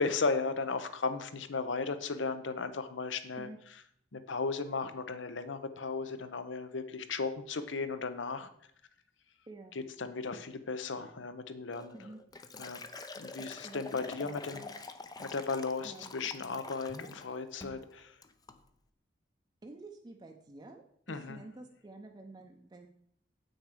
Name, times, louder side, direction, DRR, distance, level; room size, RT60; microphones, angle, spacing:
voice 1, 0.0-3.5 4.1-8.5 9.7-12.0 12.6-12.8 13.2-14.6 15.2-18.2 21.1-21.4, left 4 dB, 75° left, 11 dB, 0.8 m, -35 dB
Liquid, 11.7-17.3 17.6-17.9 18.2-18.6, left 3 dB, 20° left, 0.5 m, -46 dB
voice 2, 13.4-13.8 14.2-14.7 15.8-16.2 19.6-22.9, right 2 dB, 25° right, 2 dB, 0.6 m, -50 dB
8.1 x 6.3 x 5.0 m, 0.68 s
head